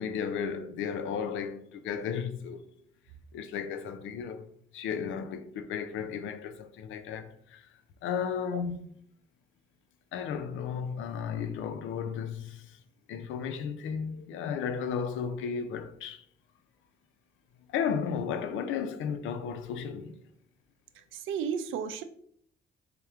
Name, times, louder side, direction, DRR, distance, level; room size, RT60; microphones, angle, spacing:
voice 1, 0.0-2.6 3.3-4.5 4.7-7.7 8.0-9.0 10.1-12.8 13.1-16.2 17.7-20.2, left 7 dB, 85° left, 0.5 m, -34 dB
voice 2, 21.1-22.0, right 7 dB, 80° right, 0.5 m, -33 dB
3.5 x 2.9 x 3.4 m
cardioid pair, 90°, 20 cm